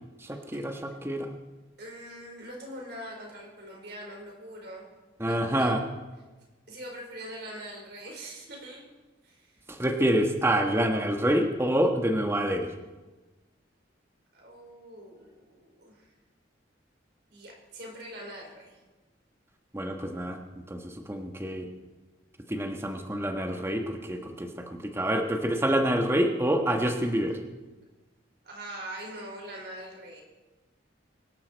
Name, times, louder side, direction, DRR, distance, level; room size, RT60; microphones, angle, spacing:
voice 1, 0.3-1.3 5.2-5.8 9.7-12.7 19.7-20.4 20.7-21.7 22.5-27.4, right 1 dB, 15° right, 4 dB, 1.3 m, -27 dB
voice 2, 1.8-4.9 5.2-5.8 6.7-8.9 9.2-9.6 14.3-16.1 17.3-18.8 28.4-30.2, right 1 dB, 55° right, 0 dB, 4.8 m, -43 dB
23.5 x 12.0 x 4.6 m, 1.2 s
head